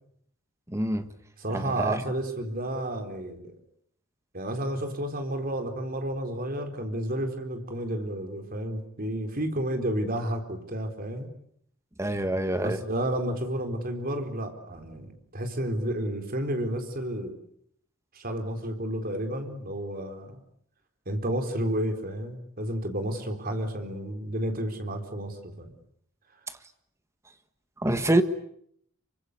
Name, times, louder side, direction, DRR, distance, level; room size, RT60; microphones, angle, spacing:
voice 1, 0.7-1.1 1.5-2.0 12.0-12.8 27.8-28.2, right 1 dB, 15° right, 1.5 m, -25 dB
voice 2, 1.4-3.5 4.3-11.3 12.6-17.4 18.1-20.4 21.1-25.7, right 1 dB, 45° right, 4.2 m, -31 dB
28.0 x 25.0 x 8.2 m
head